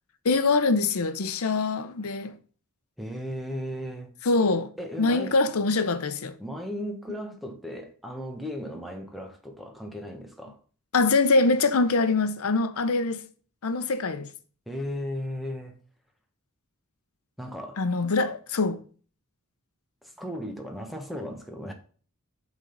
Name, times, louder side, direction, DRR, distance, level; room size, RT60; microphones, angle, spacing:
voice 1, 0.2-2.3 4.2-4.7 5.0-6.3 10.9-13.2 13.6-14.3 17.8-18.8, left 3 dB, 75° left, 0.7 m, -24 dB
voice 2, 3.0-4.1 4.8-5.4 6.4-10.6 14.7-15.7 17.4-17.8 20.0-21.7, equal, ahead, 1.1 m, -36 dB
7.2 x 3.9 x 5.3 m
head